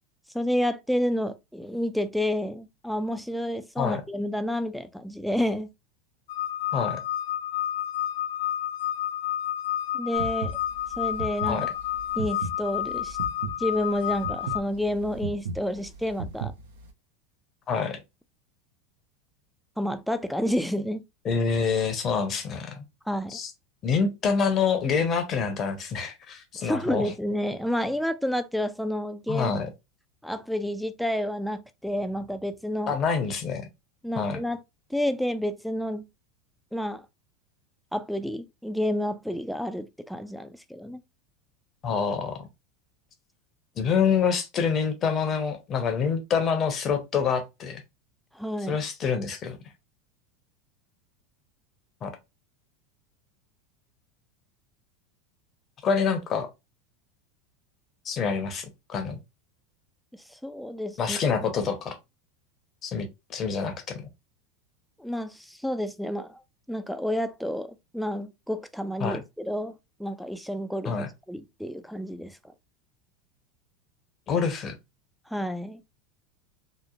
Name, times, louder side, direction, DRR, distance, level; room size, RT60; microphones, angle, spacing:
voice 1, 0.3-5.7 9.9-10.6 11.0-11.7 12.2-13.2 13.6-16.5 19.8-21.0 23.1-23.4 26.6-29.5 30.2-33.0 34.0-34.6 34.9-36.1 36.7-37.1 37.9-41.0 48.3-48.8 60.3-61.4 65.0-66.4 66.7-72.4 75.3-75.8, equal, ahead, 0.3 m, -30 dB
sound 1, 6.3-14.6, left 11 dB, 90° left, 0.5 m, -30 dB
sound 2, 10.1-16.9, right 4 dB, 85° right, 0.6 m, -36 dB
voice 2, 17.7-18.0 21.2-22.8 23.3-23.5 23.8-27.1 29.3-29.7 32.9-33.7 34.2-34.4 41.8-42.5 43.8-47.8 48.7-49.6 52.0-52.1 55.8-56.5 58.0-59.2 61.0-62.0 62.8-64.0 69.0-69.2 70.8-71.1 74.3-74.8, left 6 dB, 35° left, 0.7 m, -26 dB
2.9 x 2.0 x 2.4 m
supercardioid pair, 115°, 0 cm